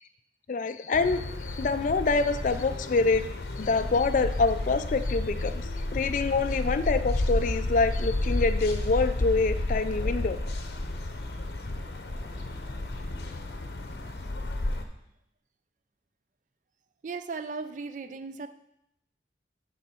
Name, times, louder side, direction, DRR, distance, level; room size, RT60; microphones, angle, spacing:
voice 1, 0.5-3.3 3.5-10.4, left 3 dB, 45° left, 10 dB, 0.3 m, -26 dB
sound 1, 0.9-14.8, left 2 dB, 60° left, 0.8 m, -31 dB
voice 2, 17.0-18.5, right 4 dB, 40° right, 11 dB, 0.4 m, -36 dB
11.5 x 4.1 x 4.4 m, 0.77 s
head